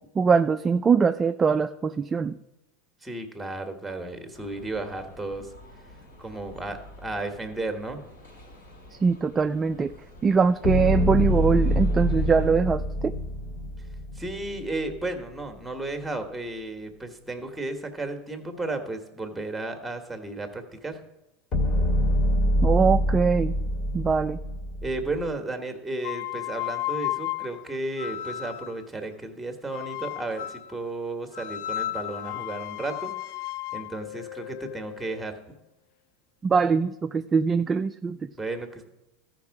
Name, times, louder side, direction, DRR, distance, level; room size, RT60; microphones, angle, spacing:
voice 1, 0.2-2.4 9.0-9.9 10.2-13.1 22.6-23.5 23.9-24.4 36.4-38.3, right 5 dB, 20° right, 9 dB, 0.3 m, -22 dB
voice 2, 3.0-5.5 6.2-8.1 14.1-21.0 24.8-33.1 33.7-35.4 38.4-38.8, right 2 dB, 5° right, 5 dB, 1.5 m, -33 dB
sound 1, 4.3-12.5, left 1 dB, 90° left, 3.5 m, -49 dB
sound 2, 10.6-14.9 21.5-25.3, equal, 45° left, 2.1 m, -25 dB
sound 3, 26.0-28.8 29.7-30.7 31.3-35.3, left 14 dB, 65° left, 0.4 m, -34 dB
13.5 x 5.3 x 4.8 m, 0.94 s
hypercardioid pair, 105°, 0 cm